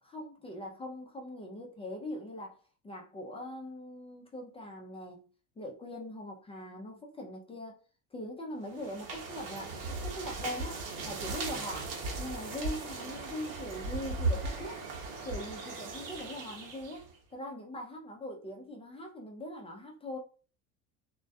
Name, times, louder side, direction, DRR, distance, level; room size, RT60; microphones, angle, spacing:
voice 1, 0.0-2.6 2.8-5.2 5.6-7.8 8.1-14.9 15.2-20.2, left 1 dB, 15° left, 0.3 m, -42 dB
sound 1, 8.7-17.1, right 3 dB, 55° right, 0.9 m, -37 dB
2.2 x 2.1 x 2.6 m
supercardioid pair, 105°, 38 cm